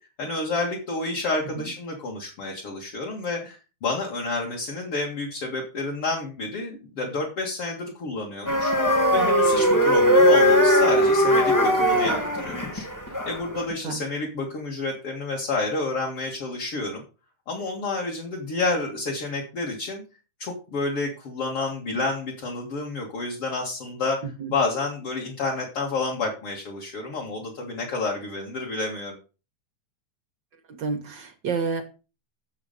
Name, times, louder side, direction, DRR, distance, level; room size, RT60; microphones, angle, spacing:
voice 1, 0.2-8.7 9.1-12.9 13.3-17.0 17.5-20.0 20.4-24.2 24.5-29.2, left 3 dB, 50° left, -1 dB, 2.7 m, -29 dB
sound 1, 8.4-13.6, equal, 25° left, 0.4 m, -19 dB
voice 2, 30.8-31.8, right 5 dB, 65° right, 6 dB, 1.1 m, -29 dB
9.8 x 7.3 x 5.3 m, 0.33 s
omnidirectional pair, 3.5 m